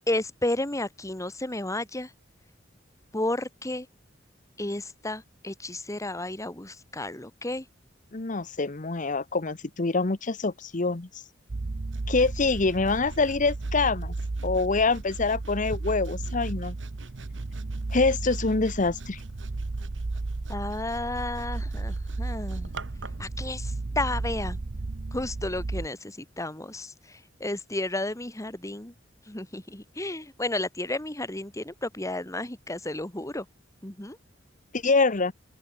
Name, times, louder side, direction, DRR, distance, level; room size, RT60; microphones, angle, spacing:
voice 1, 0.1-2.1 3.1-3.9 4.6-7.7 20.5-22.7 23.2-24.6 25.1-26.9 27.4-28.9 29.3-33.5 33.8-34.2, left 2 dB, 15° left, 2.1 m, -32 dB
voice 2, 8.1-11.1 12.1-14.1 14.4-16.8 17.9-19.2 34.7-35.3, left 3 dB, 45° left, 1.0 m, -25 dB
sound 1, 11.5-25.9, right 2 dB, 55° right, 0.7 m, -34 dB
Sawing, 11.9-23.3, right 4 dB, 75° right, 3.8 m, -50 dB
open air
head